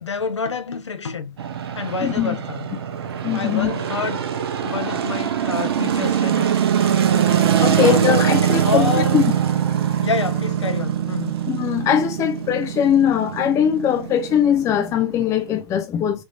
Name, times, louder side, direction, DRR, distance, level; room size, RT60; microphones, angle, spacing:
voice 1, 0.0-1.3 1.7-2.7 3.3-4.3 4.6-6.5 7.7-8.1 8.4-9.3 10.0-11.4, left 5 dB, 75° left, 0.6 m, -27 dB
sound 1, 1.4-15.6, right 9 dB, 60° right, 0.7 m, -22 dB
voice 2, 2.0-2.4 3.2-3.7 7.6-9.2 11.5-16.2, left 9 dB, 20° left, 0.4 m, -20 dB
3.6 x 3.0 x 2.5 m
figure-of-eight pair, 105°, 15 cm